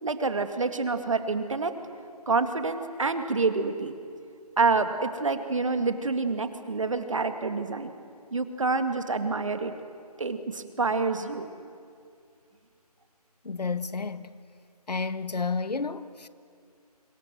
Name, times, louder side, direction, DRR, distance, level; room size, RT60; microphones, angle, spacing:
voice 1, 0.0-1.7 2.3-3.9 4.6-7.9 8.3-9.7 10.2-11.5, right 4 dB, 55° right, 2.1 m, -27 dB
voice 2, 13.4-14.3 14.9-16.3, left 4 dB, 85° left, 1.3 m, -31 dB
25.5 x 25.5 x 7.7 m
figure-of-eight pair, 175°, 20 cm